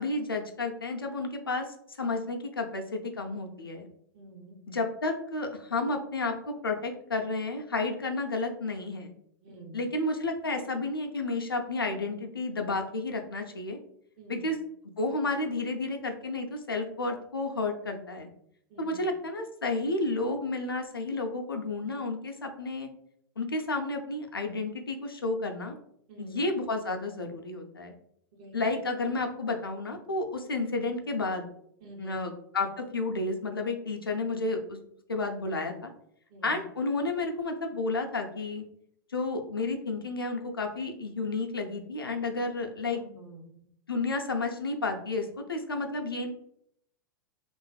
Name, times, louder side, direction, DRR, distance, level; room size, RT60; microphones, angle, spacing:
voice 1, 0.0-3.9 4.7-9.1 9.7-13.8 14.3-14.6 15.0-18.3 18.8-22.9 23.4-25.8 26.2-27.9 28.5-31.5 32.0-34.8 35.1-35.9 36.4-38.6 39.1-43.0 43.9-46.3, left 3 dB, 85° left, 3 dB, 0.4 m, -31 dB
voice 2, 4.1-4.6 9.4-9.8 14.2-14.5 18.7-19.1 26.1-26.4 28.3-28.6 31.8-32.2 36.3-36.6 42.8-43.4, right 2 dB, 40° right, 1 dB, 0.7 m, -48 dB
2.5 x 2.3 x 2.3 m, 0.72 s
figure-of-eight pair, 100°, 12 cm